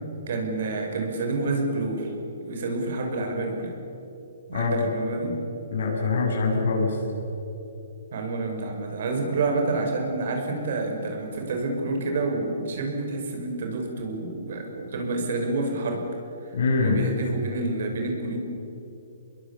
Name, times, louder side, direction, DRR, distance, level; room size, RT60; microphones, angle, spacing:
voice 1, 0.3-2.1 2.4-3.7 4.5-5.3 8.1-16.1 16.8-18.4, right 3 dB, 60° right, 3 dB, 5.9 m, -28 dB
voice 2, 5.7-7.0 16.5-17.1, left 4 dB, 75° left, 1 dB, 7.9 m, -23 dB
27.0 x 21.5 x 7.5 m, 3.0 s
hypercardioid pair, 155°, 0 cm